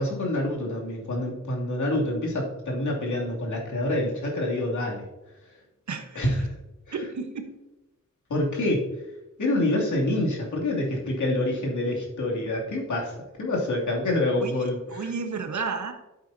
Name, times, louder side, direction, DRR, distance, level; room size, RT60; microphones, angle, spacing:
voice 1, 0.0-5.0 6.1-6.4 6.9-7.0 8.3-8.8 9.4-13.1 13.4-15.1, left 1 dB, 70° left, -2 dB, 2.8 m, -26 dB
voice 2, 5.9-6.3 6.9-7.5 14.4-14.5 14.9-15.9, right 5 dB, 65° right, 5 dB, 1.2 m, -32 dB
12.0 x 8.2 x 2.8 m, 0.99 s
wide cardioid pair, 100°, 31 cm